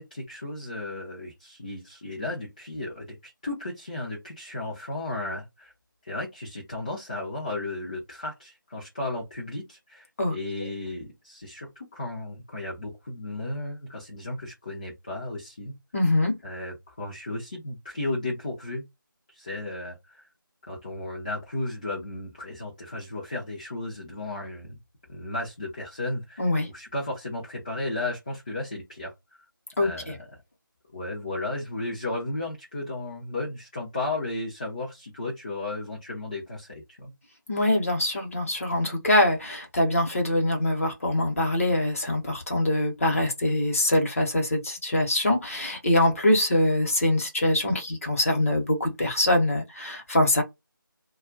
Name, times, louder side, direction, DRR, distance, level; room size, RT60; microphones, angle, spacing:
voice 1, 0.0-5.7 6.0-15.7 16.4-18.9 19.3-20.0 20.7-24.8 25.1-26.4 26.7-29.1 29.8-30.3 30.9-37.1, left 2 dB, 20° left, 0.6 m, -34 dB
voice 2, 15.9-16.4 26.4-26.7 29.8-30.1 37.5-50.4, left 1 dB, 40° left, 1.0 m, -24 dB
2.3 x 2.1 x 3.8 m
figure-of-eight pair, 165°, 11 cm